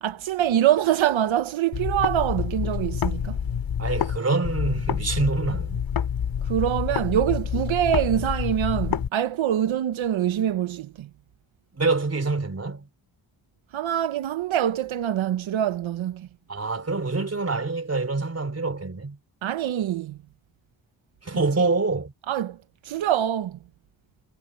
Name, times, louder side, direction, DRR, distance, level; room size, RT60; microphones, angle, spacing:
voice 1, 0.0-3.4 6.4-11.1 13.7-16.3 19.4-20.2 21.3-21.4 22.3-22.6 22.8-23.6, right 11 dB, 85° right, 0.8 m, -24 dB
sound 1, 1.7-4.2 4.4-9.1, left 8 dB, 85° left, 2.3 m, -27 dB
voice 2, 3.8-5.8 11.7-12.9 16.5-19.2 21.2-22.1, right 3 dB, 30° right, 3.7 m, -26 dB
wide cardioid pair, 105°, 46 cm